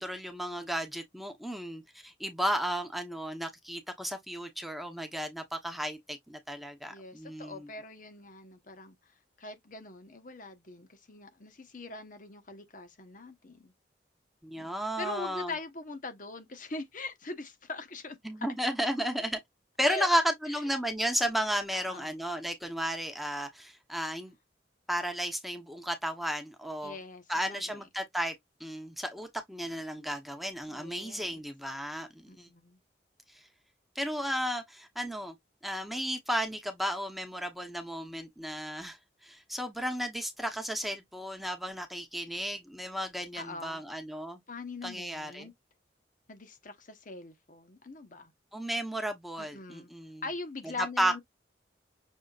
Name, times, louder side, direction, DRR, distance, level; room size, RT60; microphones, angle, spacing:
voice 1, 0.0-7.7 14.4-15.5 18.2-19.4 19.8-24.3 24.9-27.0 27.3-28.3 28.6-32.5 33.3-33.4 33.9-35.3 35.6-44.4 44.8-45.5 48.5-50.2 51.0-51.1, equal, ahead, 0.9 m, -33 dB
voice 2, 6.9-13.7 14.6-18.5 19.9-20.1 20.5-20.6 21.7-22.1 26.8-27.8 30.7-31.4 32.3-32.8 43.3-43.8 44.5-45.5 46.3-48.3 49.4-49.9 50.2-51.2, left 3 dB, 50° left, 1.1 m, -42 dB
6.4 x 3.4 x 2.4 m
head